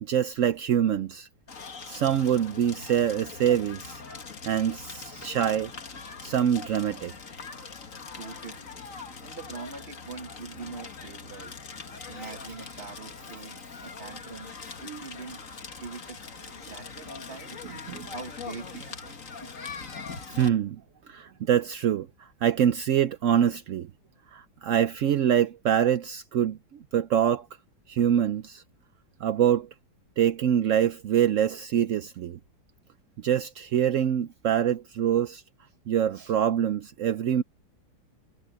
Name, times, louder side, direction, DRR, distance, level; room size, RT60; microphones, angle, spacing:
voice 1, 0.0-1.3 1.9-4.0 4.4-5.7 6.2-7.1 12.2-12.6 14.8-15.0 17.6-18.1 18.7-18.8 20.3-20.8 21.1-23.9 24.3-26.6 26.9-27.5 27.9-28.6 29.2-29.7 30.2-32.4 33.2-35.4 35.9-37.4, right 9 dB, 75° right, 0.7 m, -25 dB
Crackle, 1.5-20.5, left 4 dB, 45° left, 2.1 m, -42 dB
voice 2, 8.2-8.7 9.2-11.6 12.1-14.5 14.8-15.5 15.8-16.2 16.6-17.6 18.1-19.6, right 5 dB, 35° right, 1.6 m, -43 dB
omnidirectional pair, 2.1 m